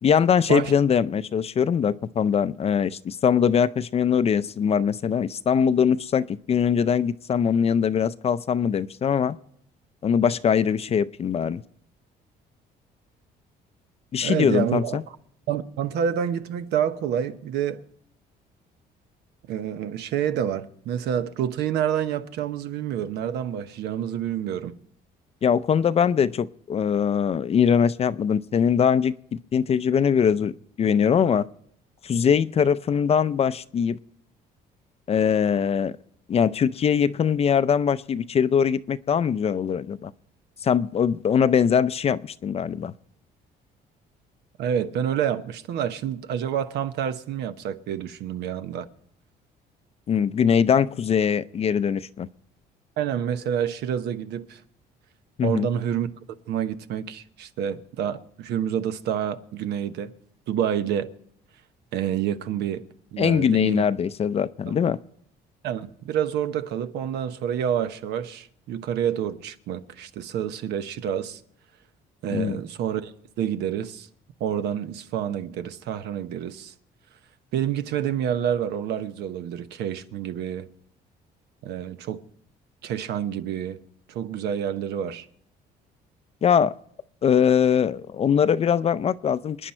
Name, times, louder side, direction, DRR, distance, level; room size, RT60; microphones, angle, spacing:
voice 1, 0.0-9.4 10.0-11.6 14.1-15.0 25.4-30.5 30.8-31.5 32.0-34.0 35.1-35.9 36.3-40.1 40.6-42.9 50.1-52.3 55.4-55.7 63.2-65.0 72.3-72.6 86.4-86.7 87.2-89.7, left 7 dB, 35° left, 0.5 m, -22 dB
voice 2, 14.2-15.2 15.5-17.8 19.5-24.7 44.6-48.9 53.0-54.6 55.4-56.1 56.5-60.1 60.5-61.1 61.9-62.8 63.1-63.8 65.6-71.4 72.2-74.1 74.4-76.7 77.5-80.7 81.6-82.2 82.8-83.8 84.1-85.3, right 9 dB, 80° right, 1.0 m, -28 dB
26.5 x 10.0 x 4.4 m
cardioid pair, 110°, 17 cm